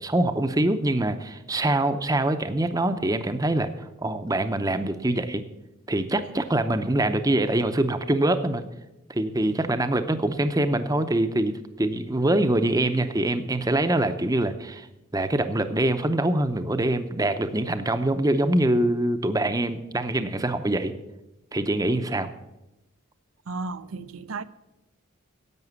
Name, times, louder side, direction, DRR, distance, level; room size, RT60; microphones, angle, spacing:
voice 1, 0.0-3.7 4.0-5.4 5.9-8.6 9.1-14.9 15.1-20.9 21.5-22.3, right 1 dB, 15° right, 0.7 m, -24 dB
voice 2, 23.5-24.4, right 3 dB, 80° right, 0.6 m, -34 dB
11.0 x 8.1 x 8.1 m
head